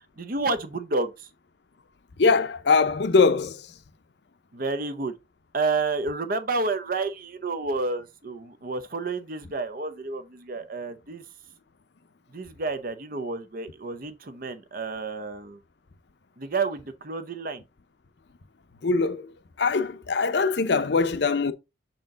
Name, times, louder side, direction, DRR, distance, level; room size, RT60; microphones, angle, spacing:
voice 1, 0.2-1.3 4.5-5.1 5.5-11.2 12.3-15.6 16.4-17.6, right 3 dB, 50° right, 0.7 m, -30 dB
voice 2, 2.2-3.8 18.8-21.5, left 4 dB, 60° left, 0.6 m, -22 dB
6.4 x 4.4 x 3.7 m
head